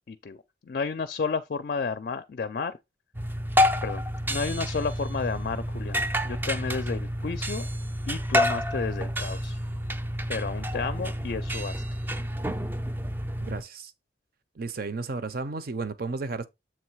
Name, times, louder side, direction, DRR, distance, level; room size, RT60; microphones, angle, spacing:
voice 1, 0.1-2.8 3.8-7.7 8.1-9.6 10.3-11.8, left 5 dB, 50° left, 0.4 m, -32 dB
sound 1, 3.1-13.6, equal, 10° right, 0.4 m, -29 dB
voice 2, 13.4-13.9 14.6-16.5, right 3 dB, 55° right, 0.6 m, -33 dB
7.5 x 3.1 x 4.6 m
head